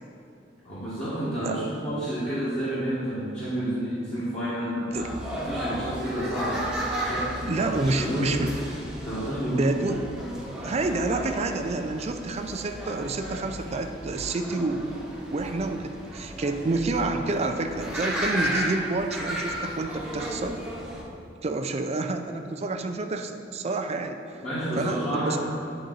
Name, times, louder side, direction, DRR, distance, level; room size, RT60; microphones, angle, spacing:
voice 1, 0.6-5.1 5.4-6.6 7.0-8.3 9.0-9.7 24.4-25.4, equal, 35° left, -12 dB, 1.5 m, -30 dB
sound 1, 4.9-21.0, right 1 dB, 5° right, 0.9 m, -34 dB
voice 2, 7.5-8.5 9.5-10.0 10.6-15.0 15.3-20.6 21.4-24.4 24.8-25.4, right 2 dB, 35° right, 6 dB, 0.4 m, -29 dB
8.8 x 4.0 x 3.9 m, 2.8 s
head